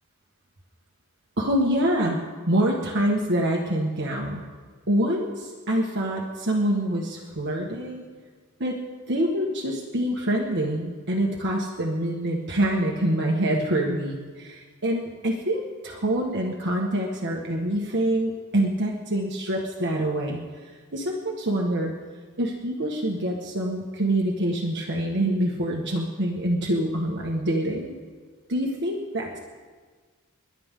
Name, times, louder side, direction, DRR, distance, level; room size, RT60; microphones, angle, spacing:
voice 1, 1.4-2.2 2.5-4.4 4.9-8.0 8.6-8.8 9.1-20.4 20.9-21.9 22.4-27.9 28.5-29.4, right 1 dB, 50° right, -1 dB, 1.6 m, -25 dB
30.0 x 12.0 x 3.8 m, 1.5 s
head